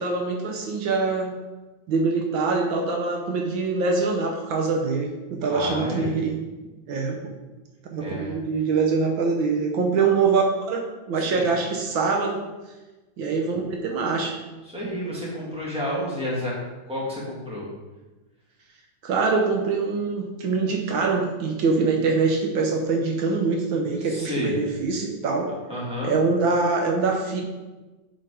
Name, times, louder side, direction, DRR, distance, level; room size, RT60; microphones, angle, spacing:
voice 1, 0.0-1.3 1.9-6.4 6.9-7.3 7.9-12.4 13.2-14.4 14.8-14.9 19.0-25.5 26.0-27.4, right 4 dB, 75° right, 2 dB, 1.6 m, -24 dB
voice 2, 5.5-6.1 8.0-8.3 11.2-11.5 14.7-16.5 16.9-17.7 24.0-24.6 25.7-26.2, left 1 dB, 5° right, -6 dB, 2.1 m, -30 dB
7.7 x 4.4 x 4.9 m, 1.2 s
omnidirectional pair, 2.2 m